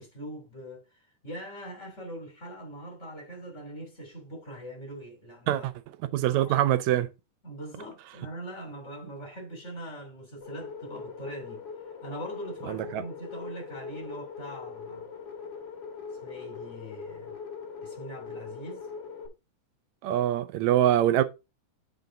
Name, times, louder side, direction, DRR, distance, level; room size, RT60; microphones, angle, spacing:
voice 1, 0.0-5.6 6.4-6.6 7.4-11.6 12.0-15.1 16.2-17.4 17.8-18.9 20.0-20.3, right 1 dB, 25° left, 2.9 m, -42 dB
voice 2, 6.1-7.1 12.7-13.0 20.0-21.2, right 12 dB, 75° right, 1.9 m, -24 dB
sound 1, 10.4-19.3, left 5 dB, 45° left, 1.7 m, -41 dB
8.1 x 5.3 x 3.7 m
omnidirectional pair, 3.5 m